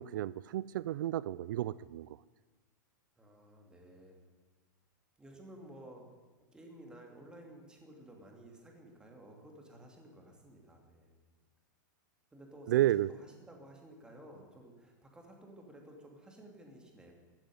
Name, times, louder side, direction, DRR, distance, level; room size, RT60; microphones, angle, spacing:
voice 1, 0.0-2.2 12.7-13.1, right 14 dB, 70° right, 18 dB, 0.4 m, -32 dB
voice 2, 3.2-4.2 5.2-6.1 6.5-11.1 12.3-17.1, right 1 dB, 5° right, 1 dB, 2.8 m, -54 dB
15.0 x 8.9 x 9.4 m, 1.3 s
supercardioid pair, 145°, 11 cm